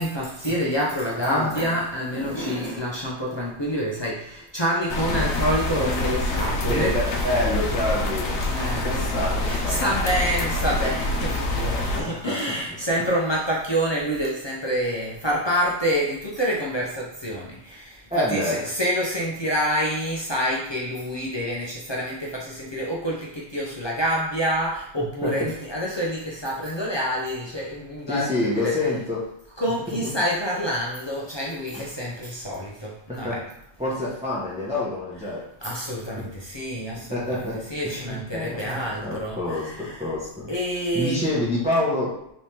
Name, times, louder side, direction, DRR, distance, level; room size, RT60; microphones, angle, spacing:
voice 1, 0.0-7.3 8.3-28.9 29.6-33.4 35.2-35.3 35.6-40.2 40.5-41.4, equal, 35° left, -4 dB, 0.5 m, -27 dB
voice 2, 1.2-1.5 6.7-8.3 8.8-9.8 11.9-12.5 18.1-18.6 25.2-25.3 28.1-29.3 30.0-30.1 31.8-31.9 33.2-33.4 33.8-35.4 36.2-36.3 37.1-40.5 40.9-42.2, left 1 dB, 5° right, -8 dB, 0.8 m, -27 dB
sound 1, 4.9-12.0, left 2 dB, 80° left, 0.9 m, -26 dB
3.3 x 3.2 x 2.8 m, 0.78 s
omnidirectional pair, 1.1 m